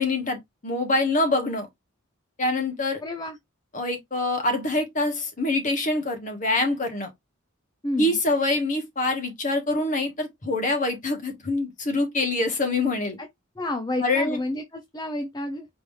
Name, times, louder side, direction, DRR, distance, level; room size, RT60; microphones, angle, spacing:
voice 1, 0.0-1.7 2.4-3.0 3.7-7.1 8.0-13.2 14.0-14.4, left 2 dB, 35° left, 1.4 m, -25 dB
voice 2, 3.0-3.4 7.8-8.2 13.2-13.3 13.6-15.7, left 1 dB, 20° left, 0.5 m, -30 dB
5.4 x 3.0 x 3.2 m
head